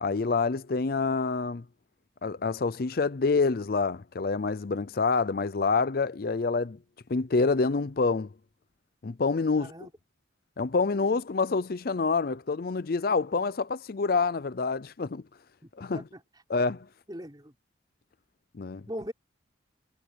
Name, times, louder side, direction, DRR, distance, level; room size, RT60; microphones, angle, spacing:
voice 1, 0.0-1.6 2.2-6.8 7.1-8.3 9.0-9.7 10.6-15.2 15.8-16.0 16.5-16.9 18.5-18.8, left 4 dB, 50° left, 0.5 m, -27 dB
voice 2, 9.6-9.9 15.6-16.2 17.1-17.5 18.9-19.1, equal, 20° right, 4.4 m, -40 dB
head